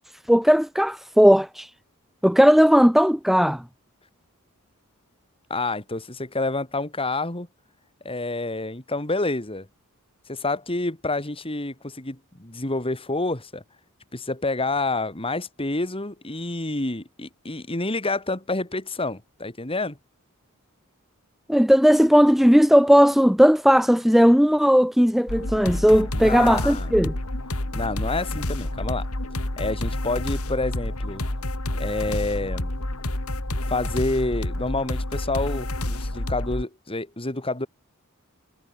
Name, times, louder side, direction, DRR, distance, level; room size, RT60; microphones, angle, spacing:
voice 1, 0.3-1.7 2.2-3.6 21.5-27.1, equal, ahead, 0.5 m, -17 dB
voice 2, 5.5-7.5 8.0-9.7 10.3-13.6 14.1-20.0 26.1-27.0 27.7-29.1 29.6-31.2 31.8-32.7 33.7-37.7, left 2 dB, 25° left, 2.9 m, -28 dB
sound 1, 25.3-36.6, left 1 dB, 75° left, 3.0 m, -29 dB
head